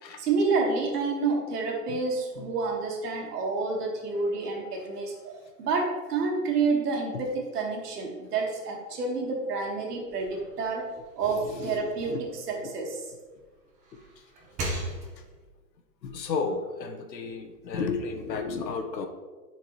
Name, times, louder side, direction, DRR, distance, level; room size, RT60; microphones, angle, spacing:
voice 1, 0.2-7.3 7.5-10.9 11.2-12.2 12.5-13.0, right 4 dB, 65° right, 0 dB, 2.0 m, -29 dB
sound 1, 10.0-13.2 13.7-15.5, right 1 dB, 15° right, 1.0 m, -39 dB
voice 2, 11.3-12.7 13.9-14.0 15.0-15.2 16.0-19.1, left 4 dB, 90° left, 5 dB, 1.3 m, -34 dB
10.5 x 4.5 x 3.2 m, 1.3 s
hypercardioid pair, 150°, 50 cm